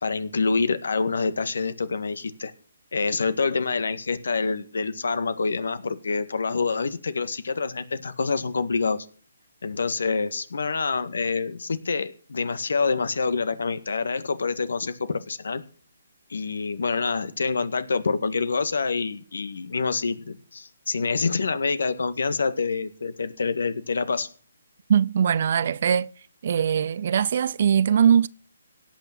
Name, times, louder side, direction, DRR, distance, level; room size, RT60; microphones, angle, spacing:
voice 1, 0.0-2.5 2.9-9.0 9.6-15.6 16.3-24.3, left 4 dB, 75° left, 1.8 m, -26 dB
voice 2, 24.9-26.1 26.4-28.3, right 8 dB, 50° right, 0.6 m, -21 dB
17.5 x 6.3 x 9.1 m
hypercardioid pair, 155°, 0 cm